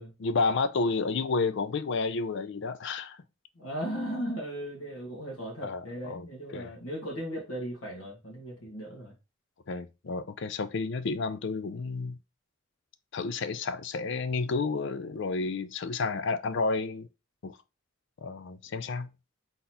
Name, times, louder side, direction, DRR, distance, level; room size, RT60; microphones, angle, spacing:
voice 1, 0.2-3.2 5.6-6.3 6.5-6.7 9.7-12.2 13.1-17.1 17.4-17.6 18.2-19.1, left 4 dB, 60° left, 0.4 m, -31 dB
voice 2, 3.5-9.1, equal, 85° left, 1.6 m, -37 dB
4.0 x 3.9 x 2.9 m
head